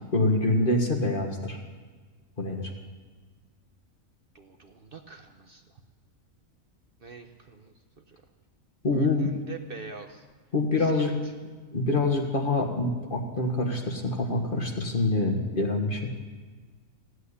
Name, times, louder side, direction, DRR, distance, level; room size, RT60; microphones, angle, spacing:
voice 1, 0.1-1.6 2.4-2.7 8.8-9.3 10.5-11.1 11.7-16.1, left 2 dB, 40° left, 2 dB, 1.7 m, -25 dB
voice 2, 4.3-5.8 7.0-7.7 8.1-8.2 8.9-10.2 10.7-11.6, right 5 dB, 45° right, 5 dB, 1.0 m, -45 dB
16.0 x 7.9 x 9.9 m, 1.4 s
omnidirectional pair, 1.4 m